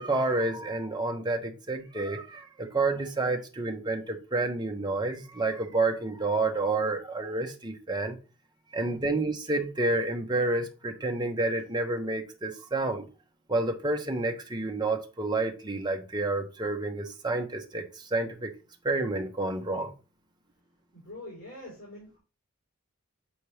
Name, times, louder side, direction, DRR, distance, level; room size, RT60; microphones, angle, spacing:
voice 1, 0.0-8.2 8.7-13.1 13.5-18.5 18.8-19.9, right 2 dB, 20° right, 0.9 m, -29 dB
voice 2, 8.8-9.2 20.9-22.2, left 1 dB, 70° left, 3.9 m, -45 dB
7.9 x 4.2 x 3.3 m
head